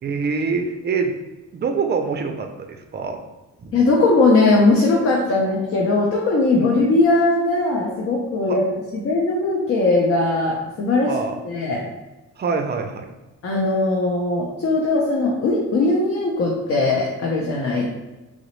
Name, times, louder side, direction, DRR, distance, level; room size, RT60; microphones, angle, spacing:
voice 1, 0.0-1.1 1.5-3.2 3.6-3.8 6.6-6.8 8.5-8.6 11.1-11.4 12.4-13.1, right 5 dB, 35° right, 5 dB, 0.4 m, -25 dB
voice 2, 3.7-11.1 11.4-11.8 13.4-17.8, left 2 dB, 50° left, -2 dB, 0.6 m, -19 dB
3.7 x 2.0 x 3.0 m, 1.1 s
cardioid pair, 90°, 30 cm